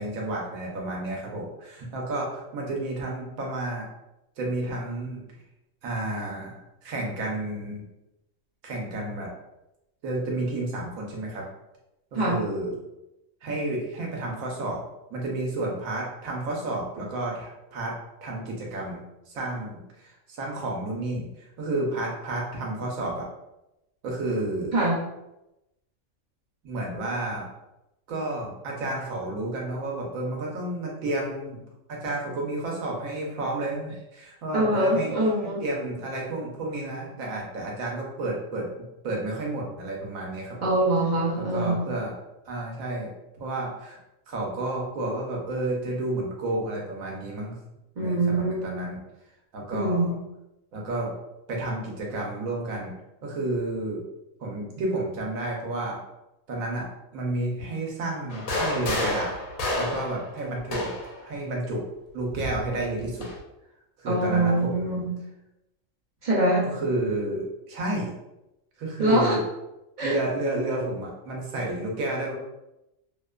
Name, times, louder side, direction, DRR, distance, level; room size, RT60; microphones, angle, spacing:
voice 1, 0.0-3.9 4.4-5.2 5.8-7.8 8.6-9.3 10.0-11.4 12.1-12.8 13.4-14.8 15.1-21.3 21.6-23.2 24.0-24.8 26.6-27.5 28.1-31.6 31.9-35.1 35.4-38.7 39.0-40.7 41.4-42.1 42.5-43.1 43.4-44.0 44.3-47.6 48.0-49.0 49.5-50.1 50.7-51.1 51.5-52.9 53.2-54.0 54.4-56.0 56.5-56.9 57.1-59.3 59.8-60.9 61.2-61.8 62.1-63.3 64.0-65.0 66.6-68.1 68.8-69.4 70.0-72.4, right 2 dB, 85° right, -1 dB, 1.1 m, -31 dB
voice 2, 34.5-35.6 40.6-41.9 48.0-48.8 49.7-50.2 64.1-65.1 66.2-66.6 69.0-69.4 70.0-70.2, right 1 dB, 55° right, -4 dB, 0.5 m, -23 dB
sound 1, 58.3-61.2 62.3-63.4, left 1 dB, 85° left, 1.0 m, -30 dB
2.8 x 2.1 x 2.3 m, 0.91 s
omnidirectional pair, 1.4 m